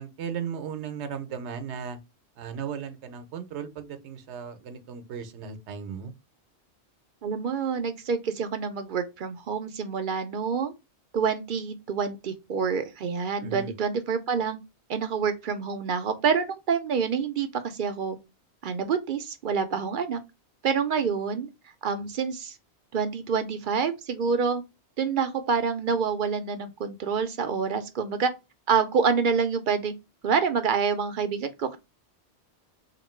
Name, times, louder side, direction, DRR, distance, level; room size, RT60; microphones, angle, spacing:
voice 1, 0.0-2.0 2.4-6.1 13.4-13.7, right 7 dB, 80° right, 0.9 m, -36 dB
voice 2, 7.2-10.7 11.1-14.6 14.9-18.2 18.6-20.2 20.6-21.5 21.8-22.6 22.9-24.6 25.0-28.3 28.7-29.9 30.2-31.8, right 6 dB, 60° right, 0.6 m, -27 dB
2.9 x 2.6 x 4.2 m
omnidirectional pair, 1.1 m